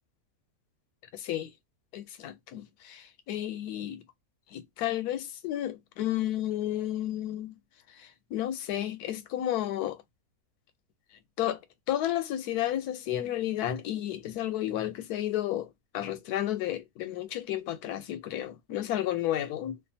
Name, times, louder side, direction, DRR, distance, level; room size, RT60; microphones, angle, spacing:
voice 1, 1.1-1.5 1.9-4.0 4.5-7.6 7.9-10.0 11.4-11.6 11.9-19.8, left 12 dB, 90° left, 1.1 m, -32 dB
2.5 x 2.4 x 2.6 m
omnidirectional pair, 1.6 m